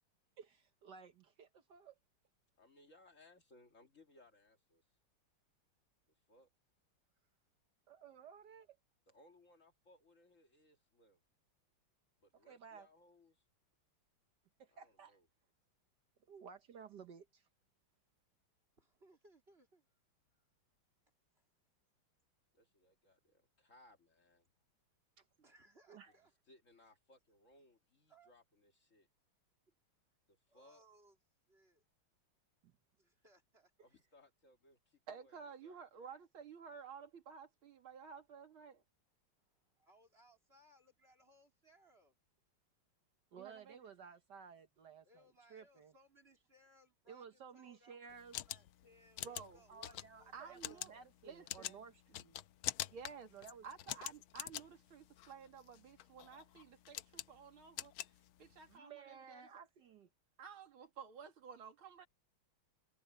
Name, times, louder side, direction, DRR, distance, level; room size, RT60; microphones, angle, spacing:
voice 1, 0.4-2.0 7.9-8.8 12.4-12.9 14.6-15.2 16.3-17.5 25.2-25.3 25.9-26.2 43.3-45.2 45.5-45.9 47.1-48.4 49.7-52.4 53.3-53.6 58.7-60.1, right 6 dB, 60° right, 1.5 m, -55 dB
voice 2, 2.6-4.9 6.3-6.5 9.1-11.2 12.2-13.4 14.7-15.3 22.5-24.5 26.5-29.1 30.5-30.8 33.8-35.9, left 1 dB, 40° left, 2.0 m, -66 dB
voice 3, 18.7-19.9 20.3-20.6 21.3-21.5 24.6-24.7 25.2-26.3 28.1-28.3 30.5-31.2 31.5-31.8 33.0-33.7 39.4-42.1 45.0-48.0 48.3-50.8 52.6-53.0, right 1 dB, 30° right, 3.4 m, -68 dB
voice 4, 35.1-38.8 43.4-43.8 49.2-49.6 50.3-51.8 52.9-53.3 53.6-57.9 58.4-59.4 60.4-62.1, right 6 dB, 80° right, 2.9 m, -53 dB
sound 1, 48.1-58.8, left 13 dB, 80° left, 1.6 m, -46 dB
omnidirectional pair, 2.3 m